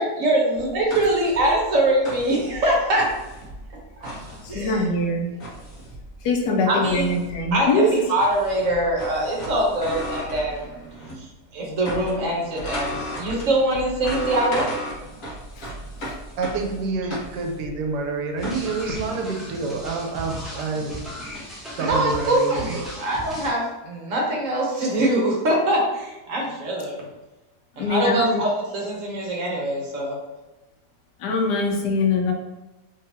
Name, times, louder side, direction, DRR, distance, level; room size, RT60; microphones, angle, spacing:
voice 1, 0.0-3.1 4.0-4.8 6.7-7.1 7.5-10.7 11.5-14.6 21.8-27.1 27.8-30.2, right 1 dB, 55° right, -3 dB, 1.2 m, -23 dB
sound 1, 0.6-11.3 11.5-19.0, equal, 55° left, 1.4 m, -35 dB
voice 2, 4.4-5.3 6.2-8.0 15.6-15.7 16.0-16.2 27.8-28.4 31.2-32.3, left 2 dB, 80° left, 1 dB, 1.3 m, -23 dB
voice 3, 16.4-21.1 21.8-22.8, right 4 dB, 80° right, 3 dB, 1.2 m, -28 dB
sound 2, 18.4-23.5, equal, ahead, 0.6 m, -36 dB
3.8 x 3.3 x 2.7 m, 1.1 s
omnidirectional pair, 1.8 m